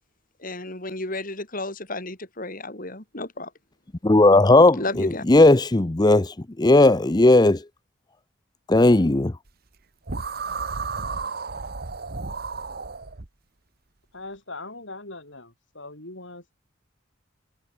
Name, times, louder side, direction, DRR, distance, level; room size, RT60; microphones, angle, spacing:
voice 1, 0.4-3.5 4.8-5.3, left 2 dB, 45° left, 5.9 m, -32 dB
voice 2, 4.0-7.6 8.7-9.3, left 2 dB, 20° left, 0.6 m, -16 dB
sound 1, 10.1-13.3, right 4 dB, 50° right, 1.2 m, -32 dB
voice 3, 14.1-16.5, left 2 dB, 65° left, 6.9 m, -40 dB
head